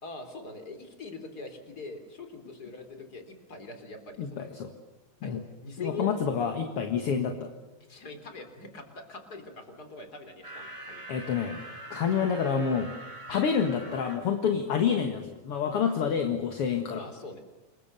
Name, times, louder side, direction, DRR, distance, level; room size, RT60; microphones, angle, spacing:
voice 1, 0.0-4.4 5.2-5.3 5.6-6.1 7.9-11.0 16.9-17.4, left 3 dB, 30° left, 6 dB, 4.0 m, -42 dB
voice 2, 4.2-4.7 5.2-5.4 5.8-7.5 11.1-11.6 11.9-12.9 13.3-17.1, left 7 dB, 50° left, 6 dB, 2.3 m, -28 dB
sound 1, 10.4-14.2, right 1 dB, 10° right, 7.3 m, -44 dB
28.0 x 23.0 x 6.9 m, 1.1 s
omnidirectional pair, 3.8 m